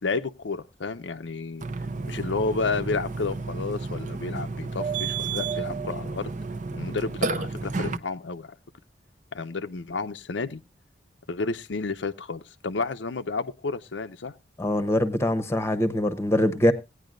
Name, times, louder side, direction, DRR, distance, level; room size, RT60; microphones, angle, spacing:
voice 1, 0.0-1.7 2.1-6.3 6.7-8.5 9.3-10.6 11.3-14.3, left 4 dB, 85° left, 0.7 m, -31 dB
Burping eructation, 1.6-8.0, right 4 dB, 45° right, 0.7 m, -31 dB
voice 2, 14.6-16.7, left 1 dB, 15° left, 0.9 m, -23 dB
17.5 x 9.9 x 2.5 m
head